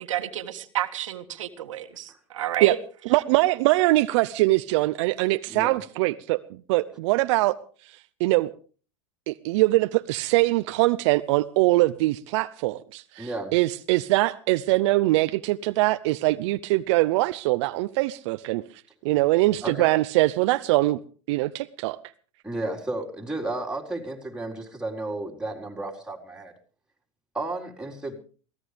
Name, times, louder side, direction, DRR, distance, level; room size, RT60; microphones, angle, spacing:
voice 1, 0.1-2.8, right 12 dB, 90° right, 1.7 m, -30 dB
voice 2, 3.1-7.6 7.8-8.5 9.3-18.6 19.0-21.0 21.3-22.0, right 19 dB, 65° right, 0.7 m, -22 dB
voice 3, 5.5-5.8 13.2-13.5 19.6-19.8 22.4-26.5 27.3-28.1, right 2 dB, 5° right, 4.5 m, -33 dB
23.0 x 17.0 x 3.4 m
supercardioid pair, 110°, 16 cm